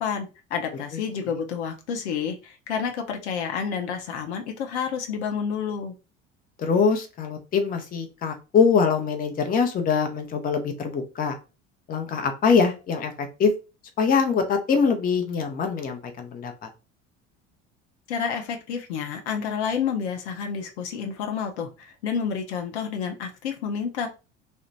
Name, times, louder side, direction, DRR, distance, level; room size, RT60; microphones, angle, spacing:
voice 1, 0.0-5.9 18.1-24.1, left 7 dB, 65° left, 4 dB, 0.7 m, -29 dB
voice 2, 6.6-11.4 11.9-13.5 14.0-16.5, left 5 dB, 25° left, 5 dB, 0.7 m, -23 dB
2.9 x 2.1 x 3.9 m, 0.30 s
figure-of-eight pair, 65°, 36 cm